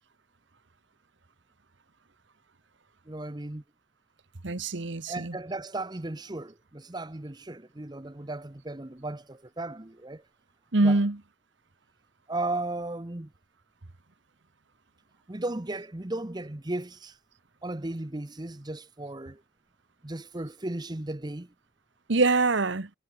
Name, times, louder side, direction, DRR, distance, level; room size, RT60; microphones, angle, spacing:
voice 1, 3.1-3.6 5.1-10.2 10.8-11.0 12.3-13.3 15.3-17.2 17.6-19.4 20.0-21.5, right 2 dB, 20° right, 0.9 m, -35 dB
voice 2, 4.4-5.4 10.7-11.2 22.1-22.9, right 3 dB, 60° right, 1.2 m, -24 dB
head